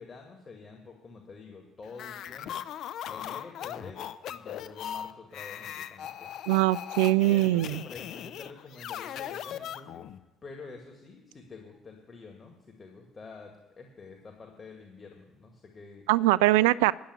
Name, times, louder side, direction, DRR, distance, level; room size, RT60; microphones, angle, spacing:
voice 1, 0.0-2.6 3.1-6.5 7.3-10.1 10.4-16.0, left 4 dB, 35° left, 2.0 m, -47 dB
sound 1, 1.9-10.2, left 10 dB, 55° left, 0.6 m, -39 dB
voice 2, 6.5-7.8 16.1-16.9, right 17 dB, 70° right, 0.3 m, -22 dB
10.5 x 7.6 x 9.5 m
figure-of-eight pair, 50°, 0 cm